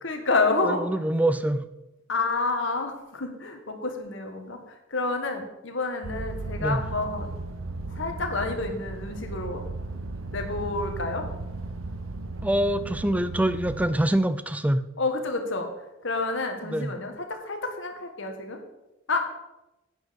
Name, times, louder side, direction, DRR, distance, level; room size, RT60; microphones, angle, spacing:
voice 1, 0.0-0.9 2.1-7.3 7.9-9.7 10.3-11.3 15.0-15.7 16.0-18.6 19.1-19.2, left 3 dB, 65° left, 5 dB, 1.7 m, -29 dB
voice 2, 0.6-1.7 6.6-6.8 12.4-14.9 16.6-16.9, right 1 dB, 5° right, 12 dB, 0.5 m, -25 dB
sound 1, 6.0-13.9, right 2 dB, 90° right, 1.0 m, -36 dB
11.0 x 9.2 x 5.3 m, 0.97 s
head